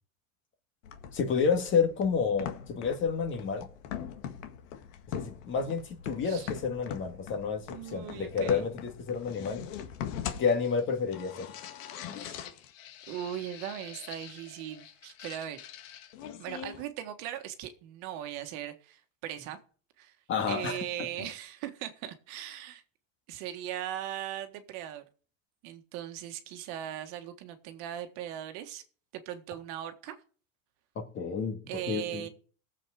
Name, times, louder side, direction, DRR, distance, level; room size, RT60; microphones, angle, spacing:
sound 1, 0.8-16.8, left 9 dB, 70° left, 1.8 m, -42 dB
voice 1, 1.1-3.7 5.1-9.6 10.4-11.5 12.1-12.3 20.3-20.8 21.2-21.3 31.0-32.3, left 5 dB, 30° left, 1.9 m, -30 dB
voice 2, 7.7-8.6 12.1-12.5 13.1-15.6 16.4-19.6 20.0-20.1 20.5-22.8 23.3-25.0 25.6-28.8 29.1-30.2 31.7-32.3, right 11 dB, 55° right, 1.7 m, -39 dB
18.0 x 7.6 x 4.9 m
supercardioid pair, 150°, 39 cm